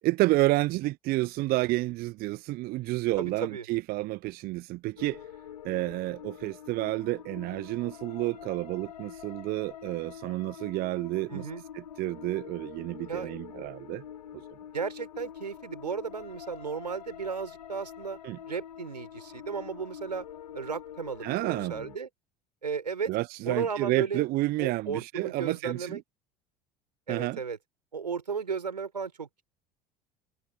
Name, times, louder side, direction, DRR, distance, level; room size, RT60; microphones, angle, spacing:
voice 1, 0.0-5.2 5.6-11.5 11.7-14.0 14.3-14.4 18.2-18.4 21.2-21.9 23.1-26.0 27.1-27.4, right 19 dB, 45° right, 0.6 m, -30 dB
voice 2, 3.2-3.6 11.3-11.6 13.1-13.3 14.7-18.2 18.5-20.3 20.5-22.1 22.6-23.1 23.5-24.3 24.6-26.0 27.1-27.6 27.9-29.4, right 5 dB, 85° right, 4.2 m, -34 dB
sound 1, 5.0-22.0, left 9 dB, 80° left, 2.8 m, -45 dB
figure-of-eight pair, 65°, 21 cm